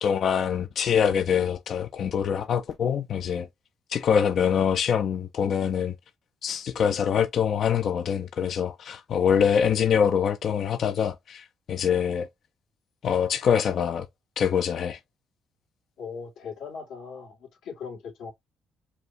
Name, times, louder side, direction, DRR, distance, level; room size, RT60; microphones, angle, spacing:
voice 1, 0.0-3.5 3.9-5.9 6.4-12.3 13.0-14.1 14.4-15.0, left 8 dB, 60° left, 0.5 m, -24 dB
voice 2, 16.0-18.3, left 6 dB, 85° left, 2.4 m, -39 dB
4.8 x 2.6 x 3.1 m
cardioid pair, 90°, 0 cm